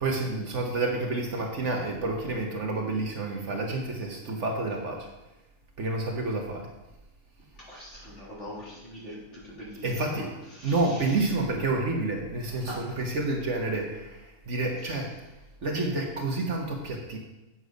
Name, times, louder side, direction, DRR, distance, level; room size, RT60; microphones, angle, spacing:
voice 1, 0.0-5.1 5.8-6.7 9.8-10.3 10.6-15.1 15.6-17.2, right 2 dB, 55° right, 1 dB, 1.5 m, -29 dB
voice 2, 7.5-11.2 12.6-13.0 14.8-15.0, equal, 50° left, -7 dB, 3.8 m, -43 dB
8.2 x 7.0 x 5.2 m, 1.0 s
omnidirectional pair, 1.6 m